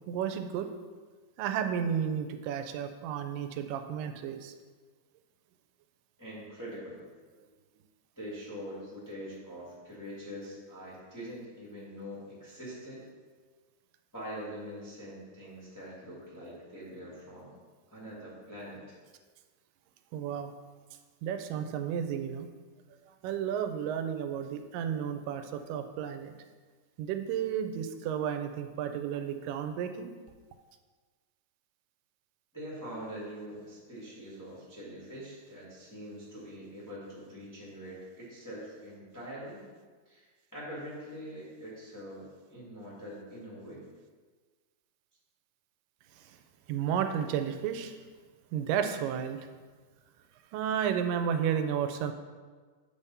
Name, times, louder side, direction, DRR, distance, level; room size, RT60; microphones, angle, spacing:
voice 1, 0.1-0.7 1.4-4.5 20.1-20.5 21.2-22.5 23.2-26.3 27.0-30.1 46.7-47.9 48.5-49.4 50.5-52.1, right 8 dB, 90° right, 7 dB, 2.2 m, -32 dB
voice 2, 6.2-7.0 8.1-13.0 14.1-17.5 17.9-18.9 32.5-39.7 40.0-40.2 40.5-43.8, equal, 10° left, -8 dB, 1.3 m, -44 dB
8.5 x 3.6 x 5.4 m, 1.4 s
omnidirectional pair, 3.8 m